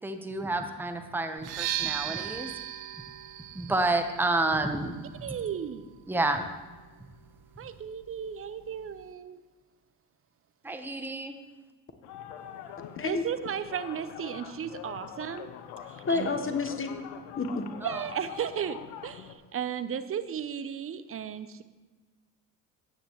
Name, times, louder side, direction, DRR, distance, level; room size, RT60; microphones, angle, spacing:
voice 1, 0.0-2.5 3.5-5.4 6.1-6.4 10.6-11.3 16.1-16.2 17.8-18.1, right 2 dB, 5° right, 6 dB, 1.1 m, -30 dB
sound 1, 1.4-9.1, right 12 dB, 60° right, 0.9 m, -39 dB
voice 2, 5.2-5.8 7.6-9.4 13.0-15.5 15.9-16.3 17.8-21.6, right 8 dB, 30° right, 12 dB, 0.8 m, -35 dB
sound 2, 12.0-19.3, left 9 dB, 65° left, 1.0 m, -44 dB
voice 3, 16.1-17.0 17.4-17.7, left 4 dB, 30° left, 7 dB, 1.3 m, -29 dB
14.0 x 9.3 x 3.2 m, 1.3 s
hypercardioid pair, 65°, 42 cm